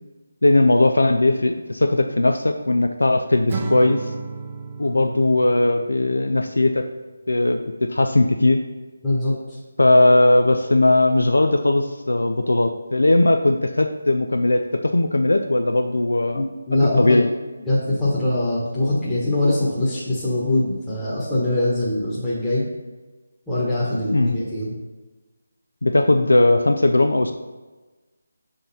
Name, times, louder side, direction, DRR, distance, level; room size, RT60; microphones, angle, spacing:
voice 1, 0.4-4.1 4.8-6.8 7.3-8.6 9.8-16.4 16.8-17.3 24.1-24.4 25.8-27.3, left 2 dB, 80° left, 6 dB, 0.4 m, -18 dB
Acoustic guitar / Strum, 3.5-6.8, right 4 dB, 30° right, 0.5 m, -33 dB
voice 2, 9.0-9.3 16.3-17.2 17.7-22.6 23.5-24.7, left 1 dB, 5° left, -13 dB, 1.1 m, -22 dB
6.2 x 3.8 x 4.1 m, 1.2 s
figure-of-eight pair, 160°, 0 cm